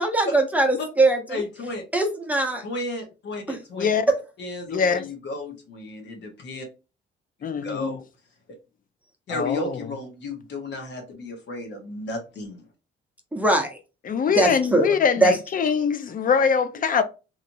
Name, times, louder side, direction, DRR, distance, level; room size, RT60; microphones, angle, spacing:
voice 1, 0.0-1.4 1.9-2.6 3.5-3.6 13.3-13.8 14.3-14.9 15.2-15.3, right 2 dB, 5° right, 0.7 m, -21 dB
voice 2, 1.3-1.8 2.6-3.9 4.4-6.7 7.4-8.0 9.3-12.6, left 2 dB, 65° left, 1.0 m, -33 dB
voice 3, 4.7-5.1 7.4-8.0 9.3-9.9 14.0-17.0, left 6 dB, 45° left, 0.5 m, -23 dB
3.0 x 2.5 x 2.6 m
cardioid pair, 90°, 20 cm